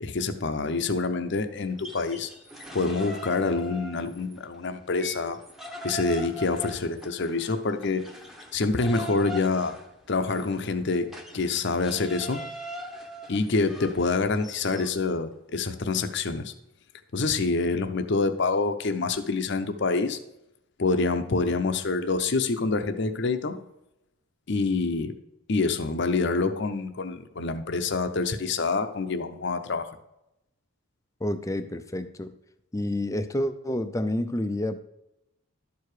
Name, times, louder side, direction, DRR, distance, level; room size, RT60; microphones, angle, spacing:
voice 1, 0.0-2.3 2.7-5.4 5.8-8.0 8.5-9.7 10.1-11.1 11.3-12.4 13.3-16.5 17.1-20.2 20.8-23.6 24.5-25.2 25.5-29.9, left 3 dB, 55° left, 8 dB, 0.7 m, -26 dB
sound 1, 1.7-4.4 4.7-15.0, equal, ahead, 0.9 m, -41 dB
voice 2, 31.2-32.3 32.7-34.8, left 1 dB, 15° left, 10 dB, 0.4 m, -29 dB
12.0 x 4.7 x 4.8 m, 0.86 s
head